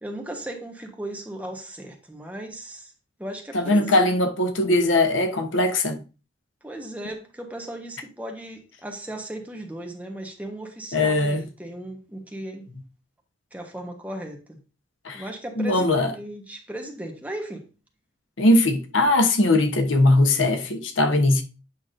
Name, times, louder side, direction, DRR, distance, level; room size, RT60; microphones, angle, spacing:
voice 1, 0.0-2.9 3.2-4.1 6.6-12.7 13.5-14.6 15.1-17.7, right 1 dB, 10° right, 1.1 m, -36 dB
voice 2, 3.5-6.0 10.9-11.4 15.0-15.2 15.6-16.1 18.4-21.4, left 2 dB, 85° left, 1.0 m, -20 dB
8.4 x 5.9 x 2.6 m
head